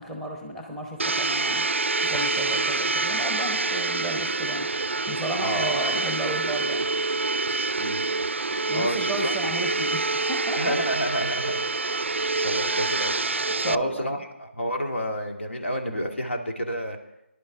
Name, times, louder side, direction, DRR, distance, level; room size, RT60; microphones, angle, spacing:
voice 1, 0.0-1.7 2.0-6.9 8.5-10.8 13.6-14.2, right 1 dB, 5° left, 1 dB, 1.0 m, -33 dB
Domestic sounds home sounds, 1.0-13.7, right 3 dB, 75° right, 0.4 m, -26 dB
voice 2, 5.4-5.8 7.8-8.1 8.7-9.3 10.5-11.6 11.9-13.4 13.6-17.0, equal, 75° left, 3 dB, 2.1 m, -30 dB
19.5 x 11.0 x 3.8 m, 0.86 s
figure-of-eight pair, 155°, 7 cm